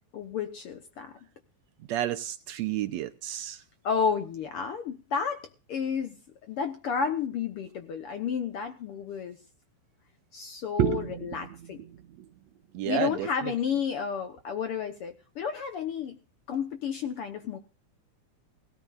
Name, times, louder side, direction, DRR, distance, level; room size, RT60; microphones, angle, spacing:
voice 1, 0.1-1.1 3.8-6.2 6.5-9.4 10.3-11.8 12.8-16.2 16.5-17.6, left 6 dB, 65° left, 1.5 m, -31 dB
voice 2, 1.9-3.6 10.8-12.3 12.7-13.5, right 11 dB, 75° right, 1.8 m, -31 dB
18.5 x 17.0 x 2.4 m
omnidirectional pair, 3.5 m